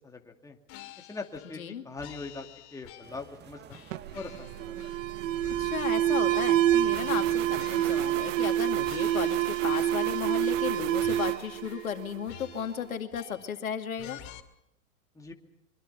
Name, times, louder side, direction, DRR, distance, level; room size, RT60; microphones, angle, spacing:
voice 1, 0.0-0.6 1.0-3.8 4.1-4.7 15.1-15.3, left 3 dB, 10° left, 2 dB, 2.6 m, -42 dB
sound 1, 0.7-1.7 2.0-3.3 3.7-5.1 5.4-8.6 8.8-10.2 10.5-10.7 11.0-12.0 12.3-13.6 14.0-14.4, left 13 dB, 45° left, 2.6 m, -49 dB
sound 2, 3.0-8.2, right 8 dB, 25° right, 1.6 m, -48 dB
Alarm, 3.9-12.5, right 13 dB, 65° right, 0.9 m, -27 dB
voice 2, 5.6-14.2, left 8 dB, 80° left, 6 dB, 2.4 m, -35 dB
25.0 x 24.0 x 5.7 m, 0.83 s
hypercardioid pair, 115°, 41 cm